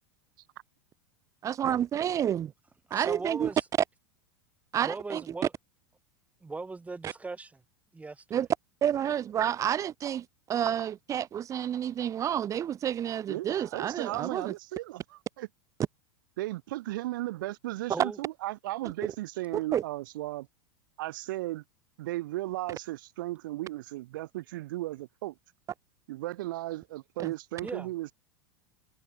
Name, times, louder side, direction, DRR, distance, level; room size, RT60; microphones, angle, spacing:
voice 1, 1.4-2.5 2.9-3.5 4.7-5.2 7.0-7.1 8.3-8.5 8.8-14.5 19.7-19.8 27.2-27.3, right 10 dB, 30° right, 0.6 m, -30 dB
voice 2, 2.9-3.6 4.8-5.5 6.4-7.6 7.9-8.2 17.9-18.2 27.6-27.9, right 3 dB, 10° right, 4.8 m, -38 dB
voice 3, 13.3-15.5 16.4-20.5 21.0-21.6 22.0-25.3 26.1-28.1, right 17 dB, 70° right, 1.0 m, -36 dB
hypercardioid pair, 95°, 11 cm